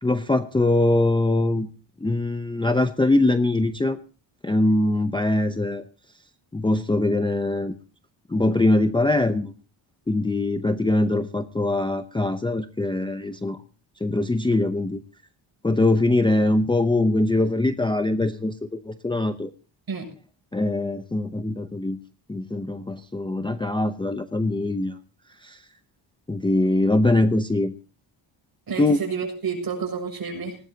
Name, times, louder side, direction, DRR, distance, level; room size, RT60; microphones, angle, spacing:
voice 1, 0.0-1.7 2.0-4.0 4.4-5.8 6.5-7.7 8.3-9.5 10.1-13.6 14.0-15.0 15.6-19.5 20.5-22.0 22.3-25.0 25.4-25.6 26.3-27.7 28.8-29.0, left 2 dB, 10° left, 8 dB, 0.7 m, -22 dB
voice 2, 28.7-30.6, right 5 dB, 50° right, 3 dB, 7.1 m, -29 dB
19.5 x 18.0 x 2.8 m, 0.37 s
wide cardioid pair, 140°, 47 cm